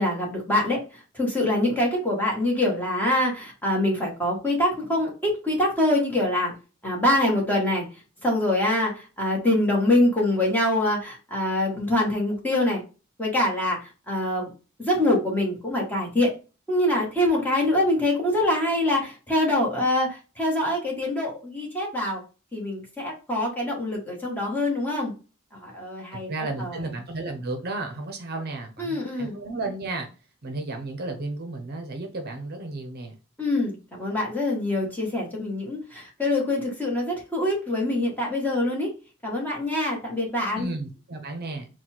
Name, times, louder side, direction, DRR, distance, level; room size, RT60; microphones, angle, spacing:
voice 1, 0.0-6.5 6.8-7.9 8.2-12.8 13.2-14.5 14.8-16.3 16.7-22.2 22.5-25.1 25.5-26.3 26.6-26.8 28.8-29.4 33.4-38.9 39.2-40.7, left 1 dB, 10° left, -2 dB, 1.4 m, -24 dB
voice 2, 26.3-30.1 30.4-33.1 40.5-41.7, right 2 dB, 50° right, 4 dB, 0.7 m, -33 dB
4.2 x 2.3 x 4.3 m, 0.33 s
head